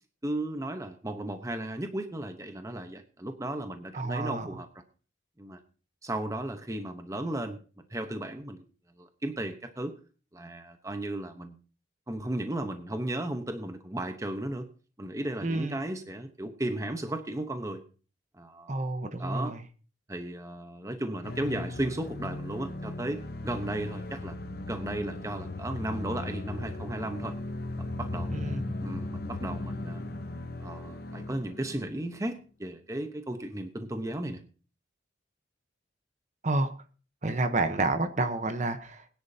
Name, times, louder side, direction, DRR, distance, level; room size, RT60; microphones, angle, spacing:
voice 1, 0.2-4.7 5.4-5.6 6.0-8.7 9.0-10.0 10.3-11.6 12.1-14.7 15.0-17.8 18.3-18.9 19.2-19.6 20.1-24.3 24.7-27.4 27.8-28.3 28.8-30.0 30.6-34.4, right 1 dB, 15° right, 7 dB, 0.9 m, -35 dB
voice 2, 3.9-4.5 15.4-15.8 18.7-19.6 28.3-28.6 36.4-36.7 37.2-39.1, right 2 dB, 40° right, 9 dB, 0.9 m, -29 dB
sound 1, 21.2-32.0, left 2 dB, 50° left, 0.9 m, -37 dB
20.5 x 10.0 x 2.8 m, 0.36 s
head